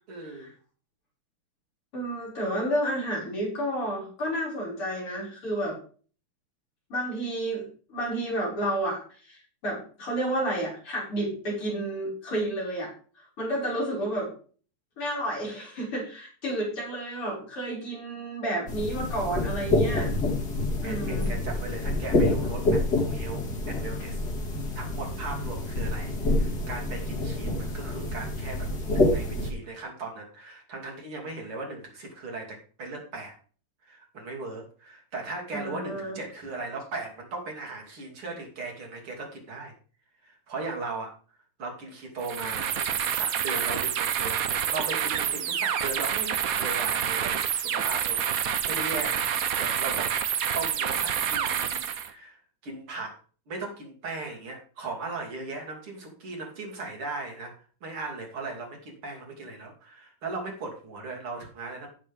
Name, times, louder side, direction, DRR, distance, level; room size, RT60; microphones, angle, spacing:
voice 1, 0.1-0.5 20.8-24.2 24.8-33.3 33.8-39.8 40.2-41.1 41.6-50.1 50.5-53.2 53.5-61.9, right 3 dB, 80° right, 0 dB, 3.7 m, -38 dB
voice 2, 1.9-5.8 6.9-12.9 13.2-14.3 15.0-20.1 20.8-21.3 35.5-36.2, right 1 dB, 85° left, -4 dB, 6.6 m, -31 dB
sound 1, 18.7-29.5, left 2 dB, 50° left, 2.7 m, -27 dB
sound 2, 42.2-52.1, right 8 dB, 60° right, 0.9 m, -28 dB
15.0 x 6.7 x 3.5 m, 0.40 s
omnidirectional pair, 2.4 m